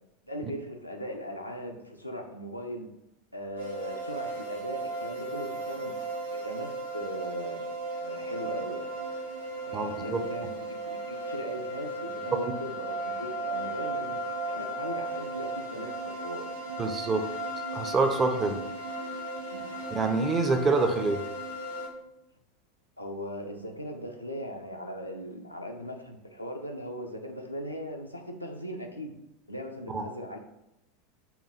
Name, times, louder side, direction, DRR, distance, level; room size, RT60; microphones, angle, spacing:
voice 1, 0.2-2.9 3.3-6.0 6.3-7.7 8.0-8.9 9.6-14.2 14.4-16.5 18.4-18.5 19.5-19.7 23.0-29.1 29.5-30.4, equal, 85° left, 2 dB, 0.5 m, -39 dB
sound 1, 3.6-21.9, right 2 dB, 75° right, 0.8 m, -36 dB
voice 2, 9.7-10.2 16.8-17.2 17.7-18.5 19.9-21.2 29.9-30.0, right 3 dB, 25° right, 6 dB, 0.5 m, -26 dB
5.7 x 2.3 x 4.1 m, 0.85 s
figure-of-eight pair, 80°, 0 cm